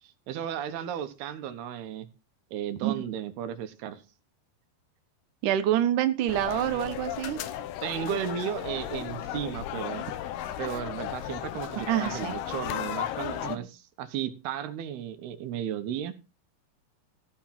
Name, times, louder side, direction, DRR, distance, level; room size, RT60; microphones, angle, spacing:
voice 1, 0.0-2.1 2.5-4.0 7.8-10.0 10.6-16.1, right 10 dB, 85° right, 10 dB, 3.2 m, -34 dB
voice 2, 5.4-7.4 11.8-12.4 13.5-13.7, right 12 dB, 65° right, 9 dB, 2.4 m, -27 dB
sound 1, 6.3-13.6, left 11 dB, 90° left, 3.0 m, -35 dB
15.5 x 5.9 x 5.9 m, 0.30 s
omnidirectional pair, 4.4 m